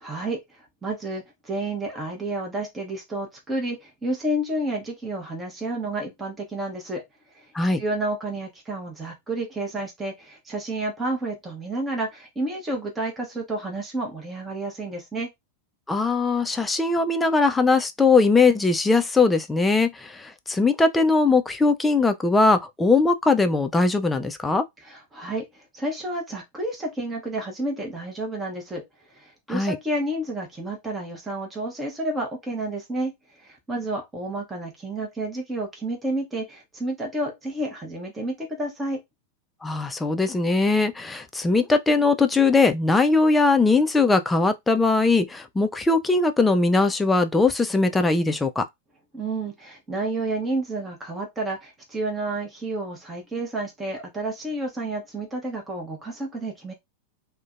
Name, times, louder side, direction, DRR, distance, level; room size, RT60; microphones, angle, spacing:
voice 1, 0.0-7.0 7.3-7.5 7.8-15.3 24.8-28.8 29.1-39.0 49.1-56.7, right 2 dB, 15° right, 0.8 m, -30 dB
voice 2, 15.9-24.6 29.5-29.8 39.6-48.6, left 3 dB, 10° left, 0.4 m, -20 dB
2.4 x 2.1 x 2.5 m
figure-of-eight pair, 90°, 0 cm